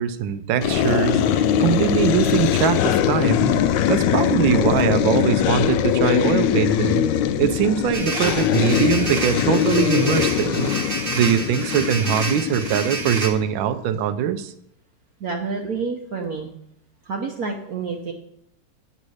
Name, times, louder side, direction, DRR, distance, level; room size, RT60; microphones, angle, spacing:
voice 1, 0.0-3.5 3.9-7.1 7.4-10.7 11.1-14.5, right 9 dB, 75° right, 11 dB, 1.4 m, -22 dB
sound 1, 0.6-13.5, left 9 dB, 75° left, 1.1 m, -21 dB
sound 2, 7.9-13.3, right 2 dB, 35° right, 1.1 m, -29 dB
voice 2, 15.2-16.5 17.0-18.1, right 4 dB, 55° right, 2 dB, 1.1 m, -28 dB
9.0 x 4.2 x 6.3 m, 0.75 s
omnidirectional pair, 2.3 m